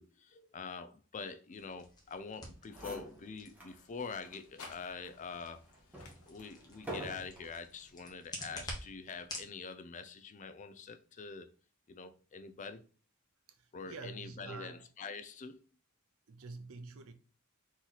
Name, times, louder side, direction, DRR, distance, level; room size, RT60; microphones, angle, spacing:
voice 1, 0.0-5.6 6.3-11.5 11.9-12.8 13.7-15.6, left 5 dB, 35° left, 0.4 m, -45 dB
sound 1, 1.5-9.5, left 1 dB, 20° left, 1.0 m, -50 dB
sound 2, 1.7-9.8, left 4 dB, 85° left, 1.0 m, -61 dB
sound 3, 2.4-2.5 2.7-3.8 4.3-4.4 5.0-7.6 8.4-8.7, right 1 dB, 5° right, 1.2 m, -47 dB
voice 2, 13.5-14.9 16.3-17.1, right 3 dB, 65° right, 0.6 m, -47 dB
4.0 x 3.1 x 4.0 m
head